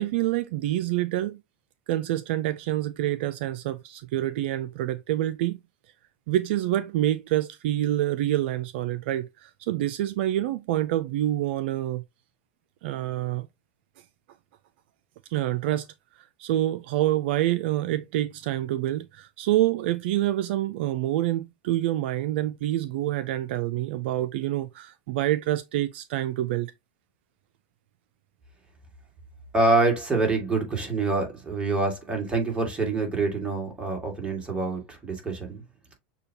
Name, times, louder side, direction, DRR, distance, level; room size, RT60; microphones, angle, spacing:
voice 1, 0.0-1.4 1.9-5.6 6.3-12.0 12.8-13.5 15.3-15.9 16.4-26.7, right 13 dB, 70° right, 0.4 m, -27 dB
voice 2, 29.5-35.6, right 3 dB, 15° right, 1.9 m, -26 dB
6.7 x 2.3 x 2.8 m
hypercardioid pair, 110°, 6 cm